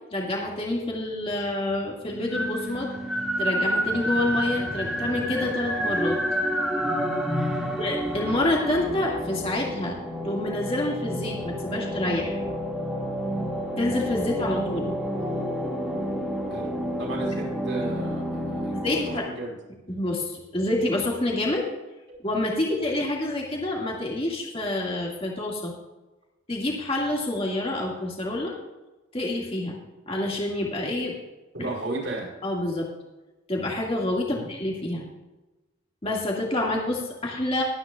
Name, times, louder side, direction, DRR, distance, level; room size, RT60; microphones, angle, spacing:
voice 1, 0.1-2.9 3.4-6.2 7.8-10.0 10.2-12.4 13.8-14.9 18.7-19.2 19.9-21.7 22.2-25.7 26.5-28.5 29.1-29.8 30.1-31.2 31.6-31.7 32.4-32.9 33.5-35.0 36.0-37.6, left 1 dB, 30° left, -2 dB, 2.1 m, -27 dB
sound 1, 2.1-19.2, equal, ahead, 2.1 m, -29 dB
voice 2, 7.4-7.7 16.5-16.7 17.0-19.5 31.5-32.3 34.3-34.5, right 2 dB, 65° right, -2 dB, 4.9 m, -35 dB
21.5 x 9.6 x 2.4 m, 1.1 s
head